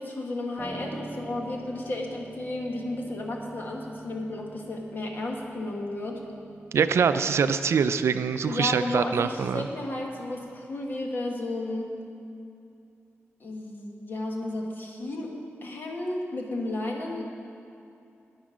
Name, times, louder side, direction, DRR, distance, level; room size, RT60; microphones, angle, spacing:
voice 1, 0.0-6.2 8.5-11.9 13.4-15.3 15.6-17.2, left 2 dB, 50° left, 0 dB, 1.4 m, -33 dB
Piano, 0.6-10.5, right 1 dB, 15° right, 1.0 m, -46 dB
voice 2, 6.7-9.7, right 6 dB, 90° right, 11 dB, 0.4 m, -24 dB
11.5 x 9.5 x 5.0 m, 2.6 s
wide cardioid pair, 165°, 4 cm